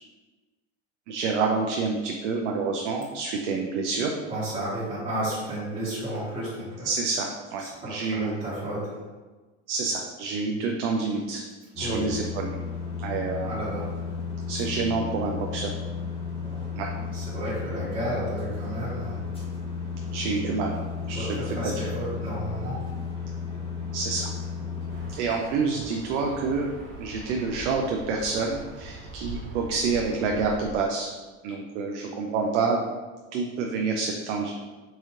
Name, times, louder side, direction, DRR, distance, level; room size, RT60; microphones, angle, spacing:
voice 1, 1.1-4.1 6.8-8.4 9.7-11.4 11.8-12.5 13.0-13.5 14.5-15.7 16.7-16.9 20.1-20.8 21.1-21.3 21.6-21.7 23.9-24.3 25.2-26.7 27.0-31.1 31.4-32.8 33.3-34.5, right 4 dB, 70° right, 1 dB, 0.5 m, -28 dB
voice 2, 4.3-6.9 7.6-9.0 11.8-12.1 13.4-13.9 16.3-19.2 21.1-22.8, right 1 dB, 15° right, -10 dB, 1.2 m, -32 dB
sound 1, 11.7-25.1, left 5 dB, 15° left, 0.9 m, -33 dB
sound 2, 24.9-30.8, right 2 dB, 35° right, 1.4 m, -41 dB
4.0 x 2.8 x 2.5 m, 1.3 s
hypercardioid pair, 90°, 36 cm